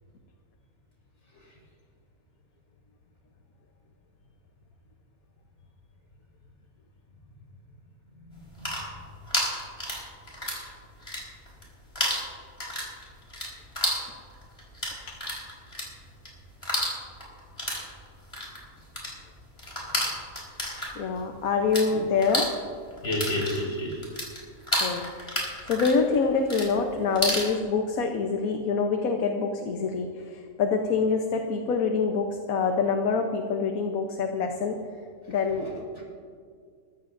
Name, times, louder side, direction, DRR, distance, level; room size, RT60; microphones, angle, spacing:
voice 1, 8.1-8.7 21.9-22.0 23.0-24.0 27.3-27.4 35.2-36.0, left 1 dB, 65° left, -4 dB, 5.0 m, -33 dB
sound 1, 8.4-10.7 10.9-11.7 11.9-21.9 22.1-27.5, equal, 25° left, 4.2 m, -31 dB
voice 2, 20.9-22.5 24.8-34.8 35.3-35.6, left 5 dB, 85° left, 4 dB, 1.4 m, -26 dB
22.5 x 14.0 x 2.6 m, 2.1 s
omnidirectional pair, 1.5 m